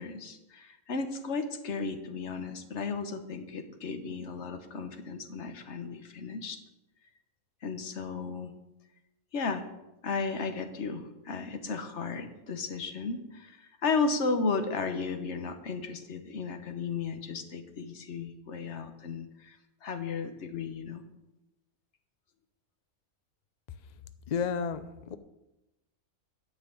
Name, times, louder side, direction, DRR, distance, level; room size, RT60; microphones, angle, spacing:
voice 1, 0.0-6.6 7.6-8.5 9.3-9.6 10.0-21.0, left 4 dB, 55° left, 8 dB, 1.2 m, -34 dB
voice 2, 24.3-25.2, left 6 dB, 80° left, 11 dB, 0.3 m, -31 dB
9.9 x 5.8 x 8.4 m, 0.96 s
omnidirectional pair, 1.6 m